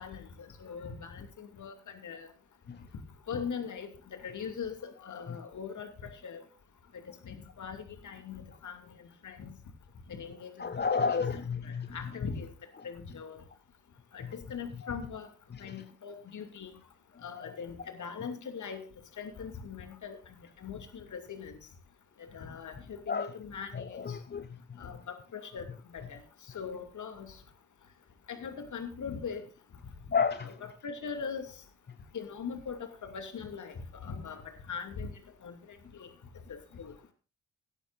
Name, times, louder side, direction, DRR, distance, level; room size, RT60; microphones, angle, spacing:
voice 1, 0.0-2.3 3.3-5.9 6.2-6.4 6.9-9.6 10.1-12.5 12.8-13.4 14.1-15.3 15.6-16.7 17.2-18.8 19.2-20.2 20.6-21.6 22.2-24.2 24.8-25.7 25.9-26.2 26.5-27.4 28.3-29.4 30.4-30.5 30.8-31.5 32.1-35.1 35.4-36.1 36.5-36.9, left 6 dB, 45° left, 6 dB, 2.6 m, -41 dB
voice 2, 10.6-12.0 14.2-14.3 15.5-15.8 17.2-17.6 23.1-23.3 23.7-24.9 30.1-30.6, left 5 dB, 25° left, 11 dB, 0.9 m, -32 dB
16.0 x 13.5 x 2.6 m, 0.33 s
figure-of-eight pair, 40°, 40 cm